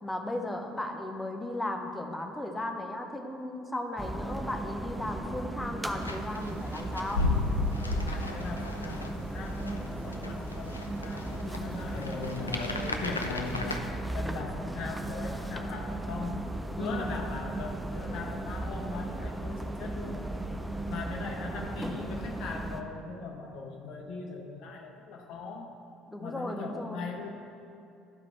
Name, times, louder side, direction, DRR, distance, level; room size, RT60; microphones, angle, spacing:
voice 1, 0.0-7.3 16.8-17.1 26.1-27.1, left 1 dB, 10° left, 3 dB, 0.8 m, -36 dB
sound 1, 4.0-22.8, right 1 dB, 10° right, 0.5 m, -36 dB
sound 2, 6.0-13.8, left 2 dB, 85° left, 0.4 m, -35 dB
voice 2, 8.0-16.5 16.8-20.2 20.8-25.8 26.2-27.3, left 4 dB, 55° left, 2 dB, 0.7 m, -39 dB
11.5 x 4.8 x 3.5 m, 2.5 s
figure-of-eight pair, 60°, 0 cm